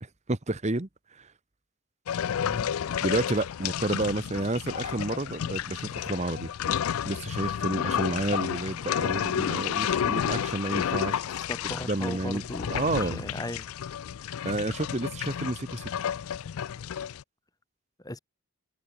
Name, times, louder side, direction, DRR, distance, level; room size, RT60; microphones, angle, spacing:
voice 1, 0.0-1.3 3.0-6.5 7.0-13.3 14.4-15.9, right 2 dB, 30° right, 1.1 m, -31 dB
sound 1, 2.1-17.2, left 9 dB, 70° left, 0.4 m, -31 dB
voice 2, 2.4-2.7 11.5-13.7 18.0-18.2, left 1 dB, 15° left, 2.2 m, -37 dB
head